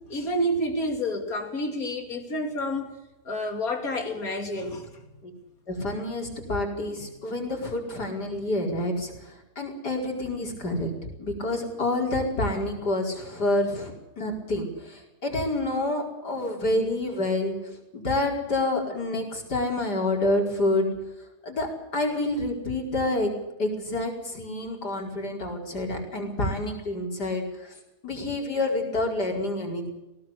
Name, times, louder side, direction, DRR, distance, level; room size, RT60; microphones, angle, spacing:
voice 1, 0.1-2.9 3.3-4.9, equal, 60° left, 3.4 m, -29 dB
voice 2, 5.7-10.9 11.2-20.9 21.4-21.7 21.9-23.3 23.6-27.7 28.0-29.9, left 2 dB, 90° left, 5.5 m, -28 dB
20.0 x 18.0 x 8.3 m
omnidirectional pair, 1.7 m